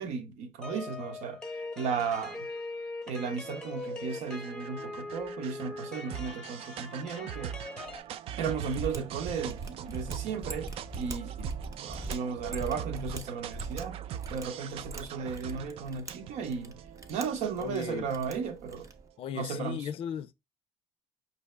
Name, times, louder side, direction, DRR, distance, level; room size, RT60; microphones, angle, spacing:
voice 1, 0.0-2.4 3.1-7.5 8.4-11.6 11.8-14.0 14.3-16.8 17.1-18.9 19.3-19.9, right 6 dB, 75° right, 0.9 m, -35 dB
sound 1, 0.6-8.0, left 2 dB, 5° left, 0.7 m, -41 dB
sound 2, 3.4-19.0, right 10 dB, 55° right, 0.4 m, -42 dB
Mechanisms, 8.6-19.1, right 2 dB, 25° right, 0.7 m, -43 dB
voice 2, 17.6-18.1 19.2-20.3, left 9 dB, 55° left, 0.5 m, -36 dB
5.3 x 2.7 x 3.2 m
cardioid pair, 125°, 12 cm